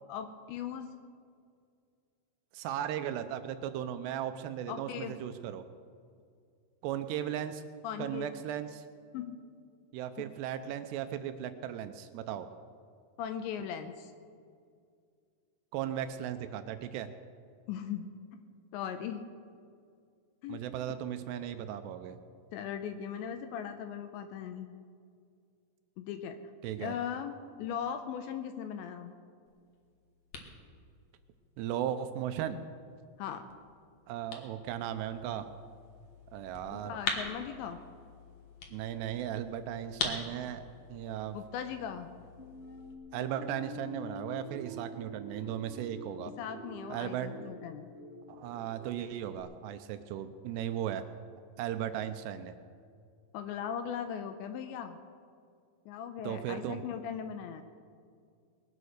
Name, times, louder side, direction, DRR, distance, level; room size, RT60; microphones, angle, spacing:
voice 1, 0.1-0.9 4.7-5.1 7.8-8.3 9.1-9.4 13.2-14.1 17.7-18.1 18.7-19.2 20.4-20.7 22.5-24.7 26.0-26.4 26.8-27.3 27.6-29.1 33.2-33.4 36.7-37.8 41.3-42.1 46.4-47.9 53.3-55.0 55.9-57.6, left 8 dB, 85° left, 7 dB, 2.8 m, -38 dB
voice 2, 2.5-5.7 6.8-7.6 8.0-8.9 9.9-12.5 15.7-17.1 20.5-22.2 26.6-27.0 31.6-32.6 34.1-35.5 36.3-36.9 38.7-40.6 40.9-41.4 43.1-46.3 46.9-47.3 48.3-51.0 51.6-52.6 56.2-56.8, right 10 dB, 80° right, 9 dB, 2.4 m, -36 dB
sound 1, 29.5-42.9, left 4 dB, 65° left, 1.6 m, -44 dB
sound 2, 42.4-49.4, equal, 40° left, 1.0 m, -47 dB
21.0 x 9.6 x 6.5 m, 2.2 s
omnidirectional pair, 5.5 m